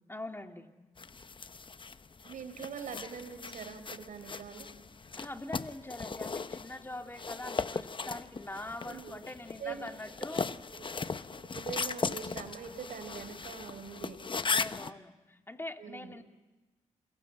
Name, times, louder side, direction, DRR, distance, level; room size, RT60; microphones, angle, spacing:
voice 1, 0.1-0.7 5.1-10.5 14.5-16.2, left 2 dB, 15° left, 4 dB, 2.6 m, -43 dB
sound 1, 1.0-14.9, left 4 dB, 40° left, 0.9 m, -38 dB
voice 2, 2.2-4.7 8.8-9.2 9.6-9.9 11.5-14.2 15.8-16.1, right 6 dB, 80° right, 8 dB, 4.2 m, -43 dB
29.0 x 22.0 x 8.5 m, 1.1 s
cardioid pair, 60°, 14 cm